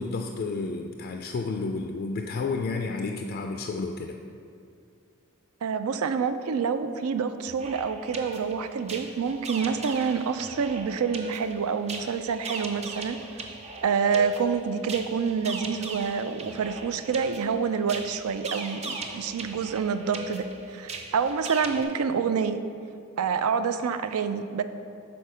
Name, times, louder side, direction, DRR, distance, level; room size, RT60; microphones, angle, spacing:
voice 1, 0.0-4.2, left 3 dB, 45° left, 3 dB, 0.3 m, -31 dB
voice 2, 5.6-13.5 13.8-22.6 23.2-24.6, right 6 dB, 85° right, 10 dB, 0.4 m, -27 dB
sound 1, 7.5-21.8, right 3 dB, 30° right, 0.5 m, -39 dB
6.4 x 4.3 x 5.5 m, 2.6 s
head